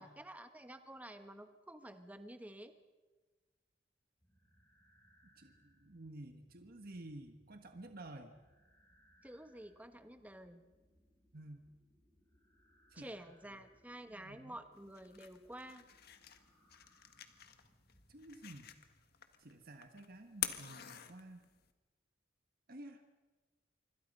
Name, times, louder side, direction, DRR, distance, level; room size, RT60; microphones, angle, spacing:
voice 1, 0.0-2.7 9.2-10.6 12.9-15.8, right 1 dB, 10° right, 8 dB, 1.4 m, -51 dB
sound 1, 4.2-19.1, equal, 10° left, 7.0 m, -71 dB
voice 2, 5.4-8.3 11.3-11.6 12.9-13.1 14.1-14.6 18.1-18.7 19.4-21.5 22.7-23.0, right 1 dB, 55° right, 5 dB, 1.6 m, -52 dB
sound 2, 14.7-21.7, left 11 dB, 55° left, 1.6 m, -47 dB
26.0 x 25.0 x 5.5 m, 1.2 s
head